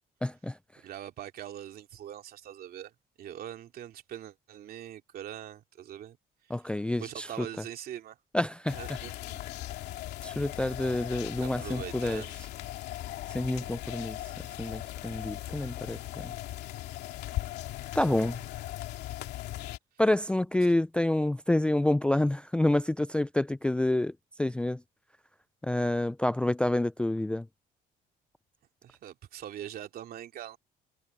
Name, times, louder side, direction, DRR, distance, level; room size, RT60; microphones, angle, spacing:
voice 1, 0.2-0.6 6.5-7.3 8.3-8.8 10.2-12.2 13.3-14.2 14.6-16.3 17.9-18.4 20.0-24.1 24.4-24.8 25.6-27.5, left 1 dB, 5° left, 0.4 m, -28 dB
voice 2, 0.8-2.9 3.2-6.2 7.0-8.2 8.7-9.4 11.4-12.3 13.6-13.8 18.1-18.2 28.8-30.6, right 11 dB, 60° right, 2.6 m, -42 dB
sound 1, 8.7-19.8, left 14 dB, 80° left, 2.6 m, -39 dB
cardioid pair, 110°, 17 cm